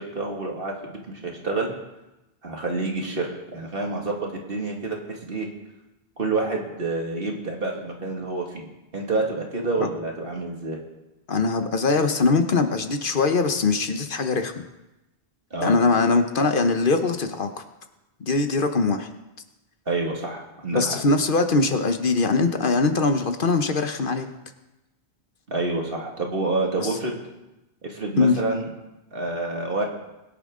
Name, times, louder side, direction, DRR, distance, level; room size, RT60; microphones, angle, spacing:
voice 1, 0.0-1.7 2.4-5.5 6.2-8.7 8.9-10.8 15.5-15.8 19.9-21.0 25.5-27.2 27.8-28.7 29.1-29.8, right 3 dB, 65° right, 0 dB, 2.3 m, -28 dB
voice 2, 11.3-14.6 15.6-17.5 18.3-19.1 20.7-24.3 26.8-26.9 28.2-28.4, left 3 dB, 60° left, 7 dB, 1.1 m, -22 dB
21.5 x 9.9 x 3.7 m, 0.98 s
omnidirectional pair, 1.0 m